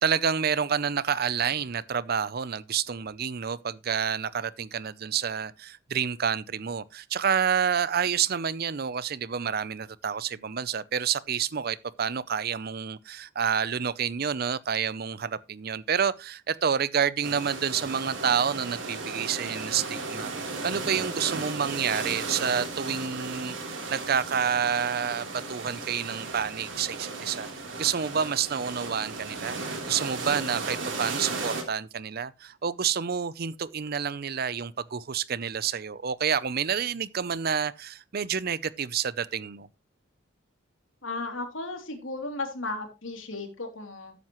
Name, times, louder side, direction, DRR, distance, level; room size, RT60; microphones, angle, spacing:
voice 1, 0.0-23.6 23.9-27.5 27.8-29.6 29.9-39.7, right 7 dB, 50° right, 0.6 m, -29 dB
sound 1, 17.2-31.6, right 3 dB, 70° right, 3.4 m, -35 dB
voice 2, 41.0-44.1, left 2 dB, 85° left, 3.0 m, -35 dB
13.0 x 9.4 x 3.0 m
head